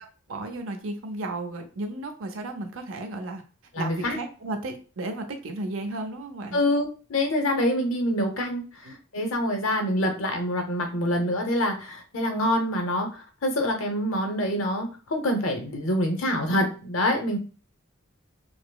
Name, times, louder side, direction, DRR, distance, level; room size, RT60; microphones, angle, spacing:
voice 1, 0.3-3.4 3.8-6.6 8.8-9.0, right 2 dB, 65° right, 5 dB, 0.6 m, -34 dB
voice 2, 3.7-4.2 6.5-8.6 9.1-17.4, left 1 dB, 70° left, 4 dB, 0.8 m, -26 dB
4.9 x 2.0 x 2.2 m, 0.35 s
head